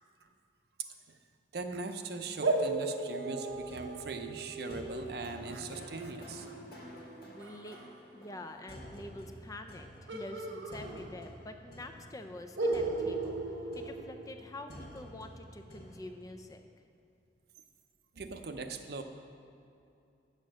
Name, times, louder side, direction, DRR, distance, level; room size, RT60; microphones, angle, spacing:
voice 1, 0.8-1.2 1.5-6.5 18.2-19.0, right 3 dB, 55° right, 7 dB, 0.6 m, -40 dB
sound 1, 2.4-7.8 10.1-11.5 11.8-11.9 12.6-14.7, right 2 dB, 90° right, 0.9 m, -36 dB
sound 2, 3.5-16.4, equal, 55° left, 1.5 m, -51 dB
voice 2, 7.3-7.8 8.1-16.6, left 1 dB, 20° left, 6 dB, 0.4 m, -46 dB
8.1 x 6.6 x 6.3 m, 2.6 s
head